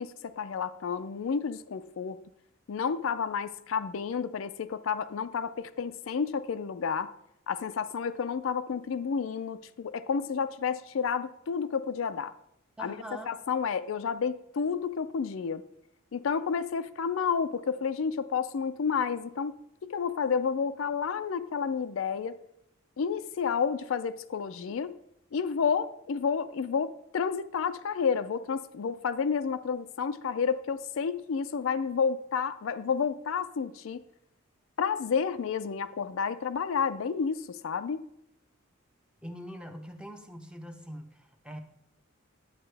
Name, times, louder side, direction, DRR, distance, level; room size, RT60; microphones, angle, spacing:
voice 1, 0.0-2.2 2.7-7.1 7.5-12.3 12.8-13.0 13.3-15.6 16.1-22.4 23.0-24.9 25.3-34.0 34.8-38.0, left 6 dB, 70° left, 12 dB, 0.4 m, -30 dB
voice 2, 12.8-13.3 39.2-41.6, equal, 5° right, 5 dB, 0.7 m, -43 dB
11.0 x 8.6 x 3.3 m, 0.76 s
head